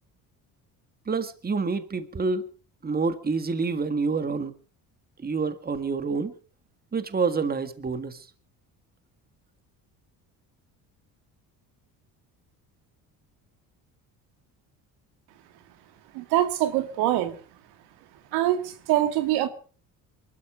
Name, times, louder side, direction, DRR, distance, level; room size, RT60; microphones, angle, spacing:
voice 1, 1.1-2.5 2.8-4.5 5.2-6.3 6.9-8.2, right 4 dB, 25° right, 1.8 m, -27 dB
voice 2, 16.1-17.4 18.3-19.5, right 13 dB, 85° right, 2.3 m, -24 dB
23.0 x 12.5 x 4.9 m
supercardioid pair, 90°, 38 cm